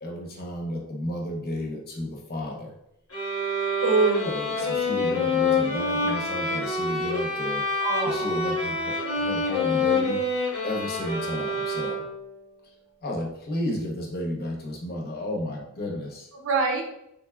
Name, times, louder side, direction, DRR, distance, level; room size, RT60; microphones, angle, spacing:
voice 1, 0.0-2.7 4.2-7.7 8.0-10.2 10.6-12.1 12.6-12.7 13.0-16.3, left 1 dB, 45° left, 0 dB, 0.8 m, -33 dB
sound 1, 3.1-12.3, left 2 dB, 90° left, 1.2 m, -27 dB
voice 2, 3.8-4.5 7.8-8.3 16.3-16.8, right 3 dB, 65° right, 2 dB, 0.6 m, -25 dB
3.7 x 3.3 x 2.3 m, 0.79 s
head